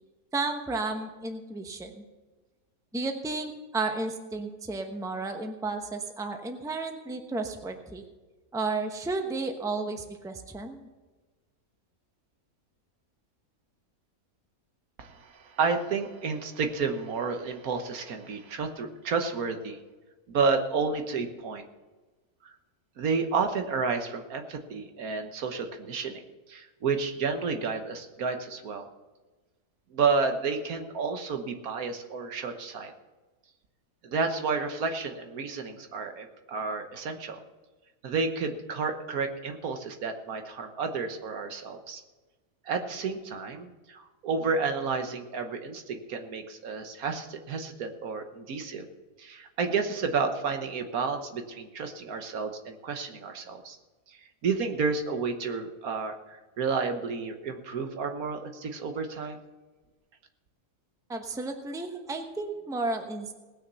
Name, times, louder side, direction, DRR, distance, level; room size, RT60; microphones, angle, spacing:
voice 1, 0.3-2.0 2.9-8.0 8.5-10.8 61.1-63.3, right 3 dB, 5° right, 4 dB, 0.9 m, -33 dB
voice 2, 15.0-19.8 20.3-21.7 23.0-26.2 26.5-28.9 29.9-32.9 34.0-37.4 38.0-42.0 42.6-48.9 49.2-53.8 54.1-59.4, right 4 dB, 70° right, 6 dB, 1.5 m, -31 dB
18.5 x 6.5 x 6.8 m, 1.2 s
omnidirectional pair, 1.6 m